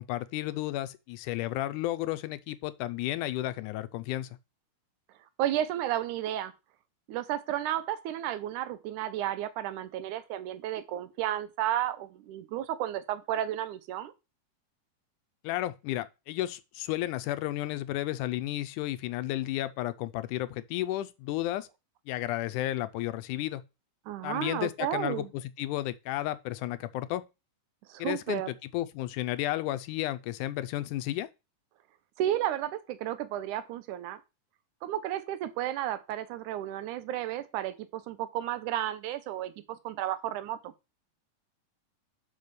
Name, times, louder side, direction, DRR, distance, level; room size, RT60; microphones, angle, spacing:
voice 1, 0.0-4.4 15.4-21.7 22.1-23.6 24.2-25.2 25.6-27.2 28.0-28.4 28.7-31.3, left 15 dB, 80° left, 2.0 m, -32 dB
voice 2, 5.4-6.5 7.1-14.1 24.1-25.3 27.9-28.5 32.2-34.2 34.8-40.7, right 12 dB, 80° right, 2.1 m, -32 dB
5.4 x 5.3 x 6.7 m
omnidirectional pair, 3.7 m